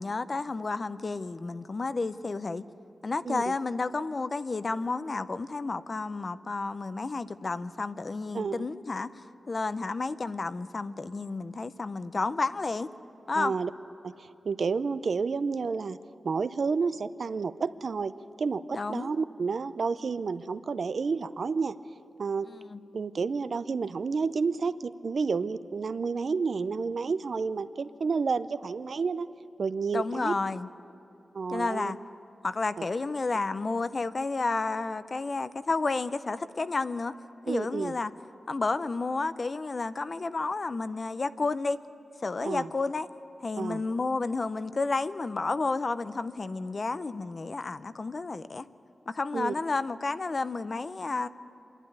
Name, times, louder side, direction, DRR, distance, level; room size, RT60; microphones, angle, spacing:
voice 1, 0.0-2.6 3.0-9.1 9.5-12.9 13.3-13.5 18.7-19.1 22.5-22.8 29.9-30.7 31.5-32.0 32.4-37.1 37.4-38.1 38.5-41.8 42.2-43.1 43.4-48.6 49.1-51.3, left 3 dB, 45° left, 13 dB, 0.5 m, -31 dB
voice 2, 8.3-8.7 13.4-13.7 14.0-16.0 16.2-18.1 18.4-21.8 22.2-22.5 22.9-29.3 29.6-30.3 31.3-31.9 32.8-32.9 37.5-37.9 42.4-42.7 43.6-43.8 49.3-49.5, right 5 dB, 65° right, 13 dB, 0.5 m, -30 dB
25.5 x 11.5 x 9.4 m, 2.9 s
wide cardioid pair, 120°, 0 cm